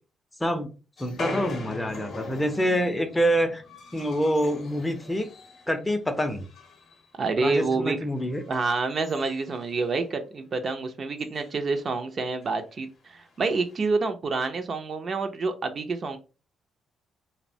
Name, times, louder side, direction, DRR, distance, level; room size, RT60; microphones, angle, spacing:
voice 1, 0.4-0.7 1.0-3.6 3.9-5.3 5.7-6.5 7.4-8.4, equal, 15° left, 7 dB, 0.5 m, -26 dB
sound 1, 1.0-5.8 6.1-7.1 7.4-7.6 8.2-10.1 10.5-10.6 10.8-10.9 11.2-11.6 12.4-12.6 13.4-13.8, left 3 dB, 55° left, 0.6 m, -40 dB
voice 2, 7.1-8.0 8.5-16.2, right 4 dB, 45° right, 7 dB, 0.4 m, -28 dB
2.7 x 2.0 x 2.6 m, 0.33 s
cardioid pair, 90°, 0 cm